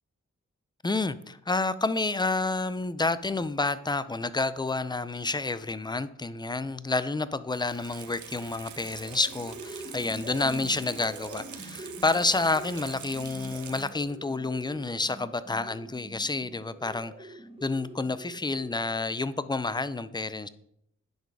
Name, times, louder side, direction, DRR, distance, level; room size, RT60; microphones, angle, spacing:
voice 1, 0.8-20.5, left 3 dB, 15° left, 0.5 m, -29 dB
Water tap faucet / Sink (filling or washing), 7.5-14.2 14.6-14.7, right 8 dB, 85° right, 0.7 m, -45 dB
sound 1, 8.7-19.3, right 1 dB, 20° right, 1.2 m, -45 dB
10.0 x 4.0 x 4.7 m
cardioid pair, 50°, 29 cm